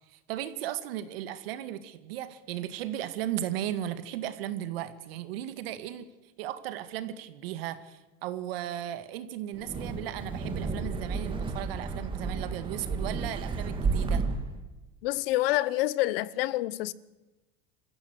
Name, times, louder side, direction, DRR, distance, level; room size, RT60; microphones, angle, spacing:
voice 1, 0.0-6.1 6.4-14.2, right 12 dB, 80° right, 2.1 m, -36 dB
Wind, 9.5-14.6, right 4 dB, 15° right, 2.3 m, -32 dB
voice 2, 15.0-16.9, left 17 dB, 75° left, 1.1 m, -27 dB
26.5 x 15.0 x 8.2 m
supercardioid pair, 160°, 29 cm